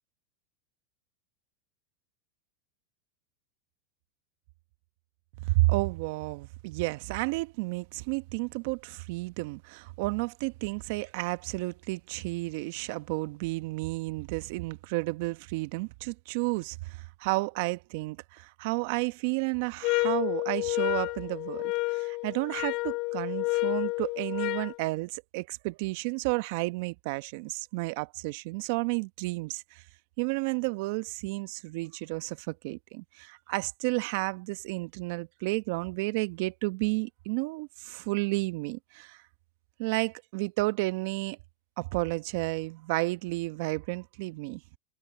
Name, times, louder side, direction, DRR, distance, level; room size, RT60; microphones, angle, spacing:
voice 1, 5.5-29.8 30.2-39.2 39.8-41.4 41.8-44.6, right 23 dB, 60° right, 1.1 m, -32 dB
sound 1, 19.8-24.8, left 25 dB, 50° left, 0.5 m, -30 dB
hypercardioid pair, 110°, 0 cm